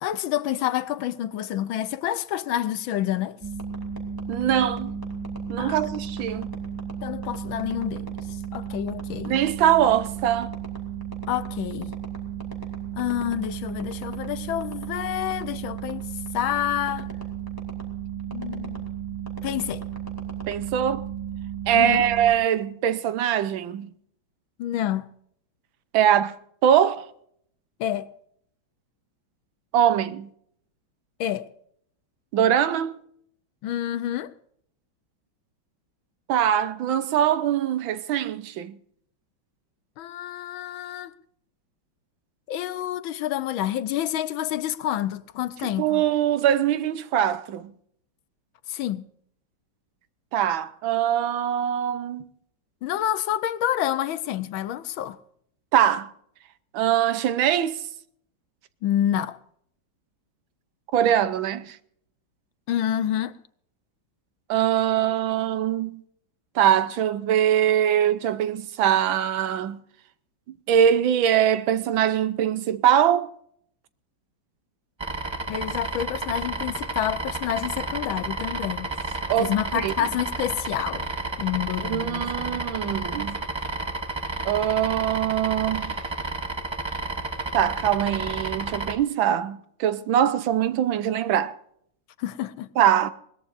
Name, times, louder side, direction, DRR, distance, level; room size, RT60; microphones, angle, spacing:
voice 1, 0.0-3.4 5.6-5.8 7.0-8.2 8.5-9.4 11.3-11.9 13.0-16.1 16.3-17.1 18.3-18.9 19.4-19.8 21.7-22.1 24.6-25.1 27.8-28.2 31.2-31.5 33.6-34.3 40.0-41.1 42.5-46.0 48.7-49.1 52.8-55.2 58.8-59.4 62.7-63.4 75.5-78.9 79.4-81.1 81.4-82.9 92.2-92.7, left 11 dB, 90° left, 1.6 m, -28 dB
sound 1, 3.4-22.3, right 8 dB, 10° right, 2.8 m, -34 dB
voice 2, 4.3-4.9 5.5-6.5 9.3-10.5 20.5-21.1 21.7-23.9 25.9-26.4 26.6-27.1 29.7-30.3 32.3-33.0 36.3-38.8 45.8-47.7 50.3-52.2 55.7-56.1 56.7-57.8 60.9-61.8 64.5-66.0 66.5-69.8 70.7-73.3 79.3-79.9 81.8-83.4 84.4-86.0 87.5-91.5 92.8-93.1, right 10 dB, 80° right, 1.6 m, -22 dB
sound 2, 75.0-88.9, right 2 dB, 40° right, 0.4 m, -31 dB
21.0 x 19.0 x 2.6 m
omnidirectional pair, 2.1 m